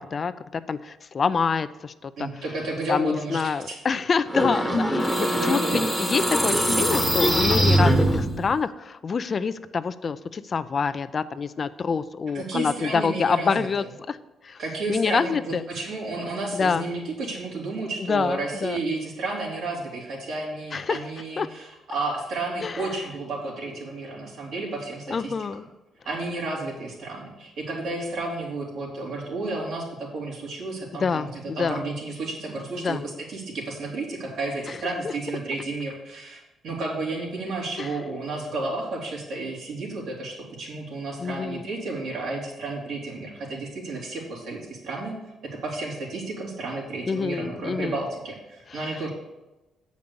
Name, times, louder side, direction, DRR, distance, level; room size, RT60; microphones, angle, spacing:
voice 1, 0.0-2.3 2.9-14.2 14.4-14.6 14.9-15.6 16.5-16.8 18.0-18.8 20.7-21.0 21.4-21.5 22.6-22.8 25.1-25.6 31.0-31.8 32.8-33.0 35.0-35.1 37.8-37.9 41.2-41.6 47.1-48.0 48.7-48.8, left 5 dB, 40° left, 14 dB, 0.4 m, -26 dB
voice 2, 2.2-3.8 4.5-4.8 5.1-6.0 12.3-13.7 14.6-25.3 26.0-45.2 45.6-49.1, right 2 dB, 75° right, -3 dB, 3.0 m, -32 dB
sound 1, 4.3-8.5, right 1 dB, 5° right, 1.1 m, -22 dB
8.2 x 5.2 x 6.9 m, 1.0 s
cardioid pair, 90°, 0 cm